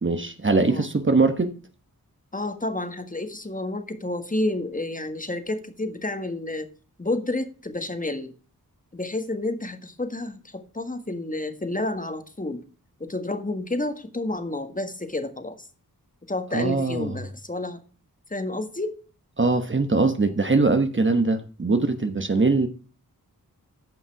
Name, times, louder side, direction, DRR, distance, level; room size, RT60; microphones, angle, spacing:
voice 1, 0.0-1.5 16.5-17.2 19.4-22.7, right 3 dB, 35° right, 1.1 m, -22 dB
voice 2, 2.3-6.7 7.0-8.3 8.9-12.6 13.0-15.7 16.3-17.8 18.3-19.0 22.4-22.5, left 2 dB, 20° left, 1.6 m, -30 dB
14.5 x 5.5 x 4.7 m
wide cardioid pair, 65°, 36 cm